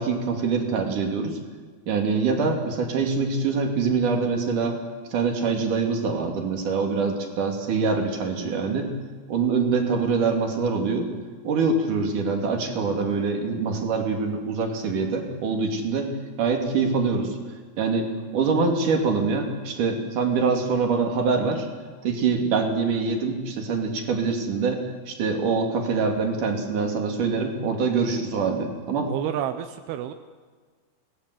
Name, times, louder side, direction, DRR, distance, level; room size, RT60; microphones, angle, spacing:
voice 1, 0.0-1.4 1.9-4.8 5.1-8.9 9.3-11.1 11.4-16.1 16.4-17.4 17.8-21.7 22.0-29.1, right 4 dB, 45° right, 3 dB, 3.9 m, -24 dB
voice 2, 29.1-30.1, right 11 dB, 80° right, 8 dB, 2.3 m, -29 dB
27.5 x 19.0 x 7.9 m, 1.5 s
omnidirectional pair, 5.5 m